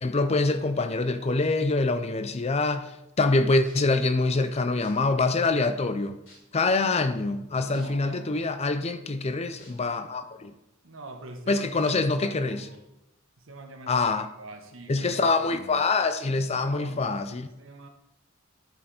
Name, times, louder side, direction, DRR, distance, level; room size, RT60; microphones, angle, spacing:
voice 1, 0.0-2.9 3.2-6.2 6.5-10.5 11.5-12.6 13.9-14.2 14.9-17.5, left 3 dB, 30° left, 0.5 m, -25 dB
sound 1, 3.6-3.9 4.8-4.9 5.7-5.8 6.2-6.6 7.7-7.8 9.6-9.7 10.2-10.3 11.8-11.9 12.7-12.8, left 2 dB, 70° left, 3.6 m, -53 dB
voice 2, 7.6-8.5 10.8-12.8 13.4-15.8 16.5-17.9, right 2 dB, 75° right, 1.4 m, -45 dB
10.5 x 6.7 x 4.3 m
head